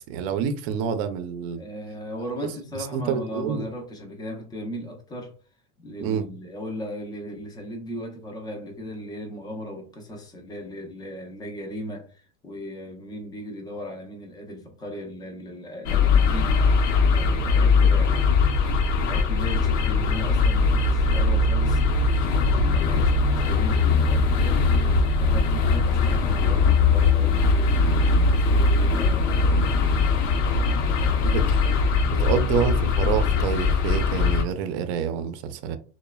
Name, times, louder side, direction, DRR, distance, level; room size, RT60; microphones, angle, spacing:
voice 1, 0.0-1.6 2.9-3.6 6.0-6.2 31.2-31.4 32.2-35.8, right 7 dB, 55° right, 0.5 m, -27 dB
voice 2, 1.6-5.4 5.8-16.6 17.0-18.2 19.0-21.9 22.2-24.8 25.2-27.8 28.3-30.0 31.0-31.7 32.0-32.6, equal, 10° left, 0.4 m, -37 dB
sound 1, 15.9-34.4, left 4 dB, 85° left, 0.8 m, -20 dB
3.0 x 2.1 x 2.2 m
supercardioid pair, 150°, 38 cm